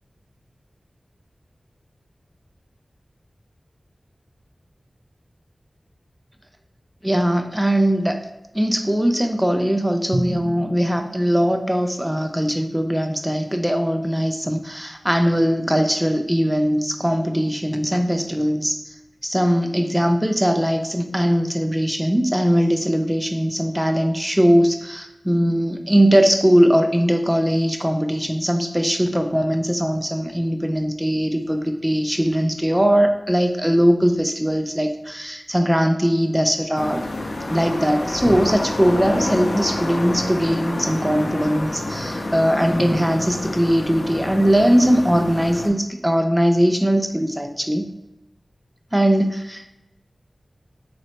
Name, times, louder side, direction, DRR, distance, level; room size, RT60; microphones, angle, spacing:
voice 1, 7.0-8.2 8.5-18.9 19.2-37.0 37.5-47.9 48.9-49.7, equal, 10° right, 5 dB, 0.3 m, -20 dB
Drum, 10.1-11.9, right 1 dB, 65° right, 0.5 m, -31 dB
sound 1, 36.7-45.7, left 1 dB, 65° left, 0.5 m, -28 dB
3.0 x 2.8 x 4.2 m, 0.94 s
cardioid pair, 45°, 0 cm